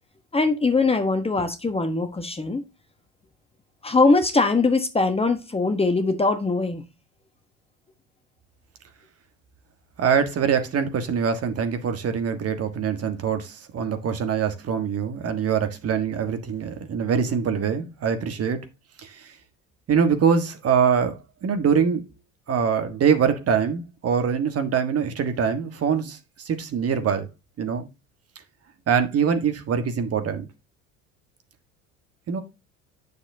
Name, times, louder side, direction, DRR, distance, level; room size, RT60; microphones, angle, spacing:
voice 1, 0.3-2.6 3.8-6.8, left 3 dB, 15° left, 1.2 m, -21 dB
voice 2, 10.0-18.6 19.0-19.3 19.9-22.0 22.5-26.2 26.4-27.3 27.6-27.9 28.9-30.5 32.3-32.4, right 7 dB, 40° right, 1.5 m, -23 dB
9.6 x 6.7 x 2.8 m
hypercardioid pair, 70°, 39 cm